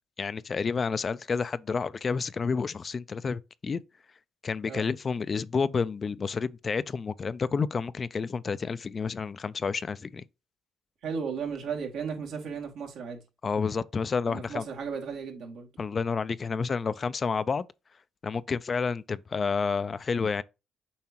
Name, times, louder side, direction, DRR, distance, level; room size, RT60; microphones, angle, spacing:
voice 1, 0.2-3.8 4.4-10.2 13.4-14.7 15.8-17.6 18.2-20.4, left 5 dB, 40° left, 0.4 m, -30 dB
voice 2, 11.0-13.2 14.3-15.7, right 6 dB, 80° right, 2.3 m, -35 dB
7.2 x 4.6 x 2.9 m
cardioid pair, 75°, 0 cm